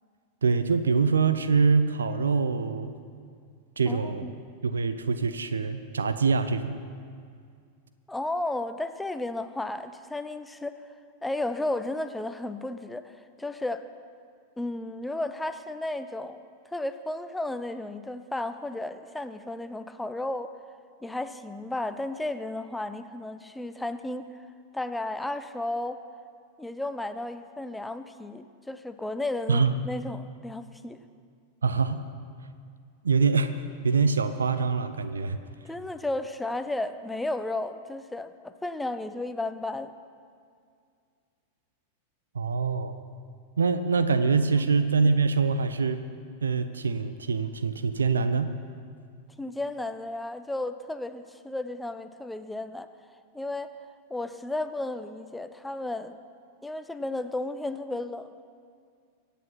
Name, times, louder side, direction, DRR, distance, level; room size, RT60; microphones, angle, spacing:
voice 1, 0.4-2.9 3.8-4.3 4.6-6.8 29.5-29.7 31.6-32.0 33.0-33.5 33.8-35.4 42.3-43.0 43.6-46.0 46.4-48.5, right 4 dB, 70° right, 11 dB, 0.7 m, -24 dB
voice 2, 3.8-4.3 8.1-10.8 11.2-13.9 14.6-16.4 16.7-20.5 21.0-24.3 24.7-26.0 26.6-31.0 35.6-39.9 44.5-44.7 49.4-52.9 53.3-53.7 54.1-56.2 56.6-58.4, left 2 dB, 5° left, 10 dB, 0.7 m, -33 dB
24.5 x 8.4 x 5.7 m, 2.2 s
figure-of-eight pair, 90°, 0 cm